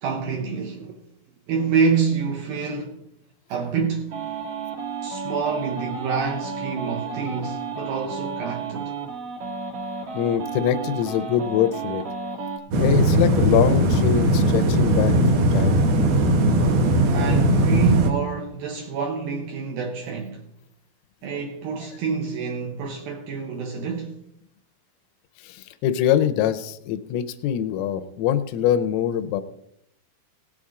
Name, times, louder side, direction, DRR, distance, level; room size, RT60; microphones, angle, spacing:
voice 1, 0.0-1.0 1.5-3.0 3.5-4.2 5.0-8.9 17.1-20.4 21.2-24.2, right 6 dB, 85° right, 2.1 m, -27 dB
sound 1, 4.1-12.6, right 5 dB, 50° right, 1.8 m, -32 dB
voice 2, 10.1-12.0 12.8-15.8 25.4-29.4, left 10 dB, 90° left, 3.4 m, -23 dB
sound 2, 12.7-18.1, right 1 dB, 65° right, 2.6 m, -19 dB
18.0 x 8.5 x 3.7 m
omnidirectional pair, 5.8 m